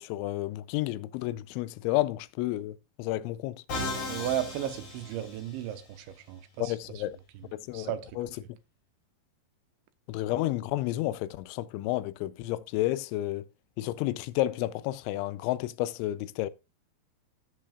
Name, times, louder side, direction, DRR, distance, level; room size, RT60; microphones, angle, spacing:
voice 1, 0.0-3.6 6.6-7.2 7.5-8.3 10.1-13.5 13.8-16.5, left 16 dB, 90° left, 3.0 m, -31 dB
Musical instrument, 3.7-5.8, left 2 dB, 50° left, 5.6 m, -36 dB
voice 2, 4.1-7.0 7.3-8.2, right 11 dB, 85° right, 3.2 m, -35 dB
16.5 x 7.5 x 2.4 m
omnidirectional pair, 5.3 m